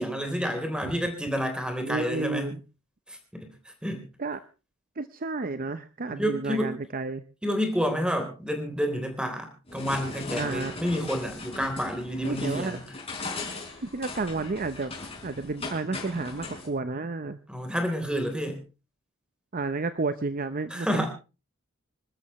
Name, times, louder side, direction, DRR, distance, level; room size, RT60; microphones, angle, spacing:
voice 1, 0.0-2.5 3.1-3.5 3.8-4.0 6.1-6.8 7.4-12.8 17.5-18.6 20.7-21.1, equal, 5° right, 5 dB, 3.5 m, -29 dB
voice 2, 1.8-2.6 4.2-4.4 5.0-7.2 10.4-10.7 12.2-12.8 13.8-14.9 15.2-17.4 19.5-21.1, right 3 dB, 40° right, 11 dB, 0.7 m, -31 dB
sound 1, 9.7-16.7, left 3 dB, 25° left, 5.0 m, -38 dB
26.5 x 13.0 x 3.1 m, 0.31 s
head